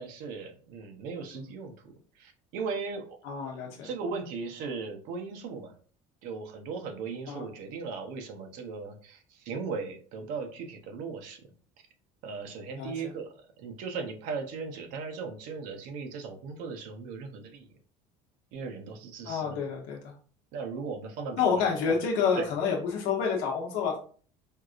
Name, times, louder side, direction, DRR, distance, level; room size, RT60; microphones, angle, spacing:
voice 1, 0.0-1.7 2.2-3.2 3.6-5.7 6.2-11.4 12.2-17.7 18.5-19.6 20.5-22.0 22.3-22.5, right 4 dB, 75° right, 5 dB, 0.7 m, -38 dB
voice 2, 3.2-3.9 7.3-7.5 12.8-13.1 19.2-20.1 21.4-24.0, left 6 dB, 85° left, -1 dB, 0.8 m, -29 dB
4.6 x 2.4 x 2.4 m, 0.43 s
cardioid pair, 160°, 14 cm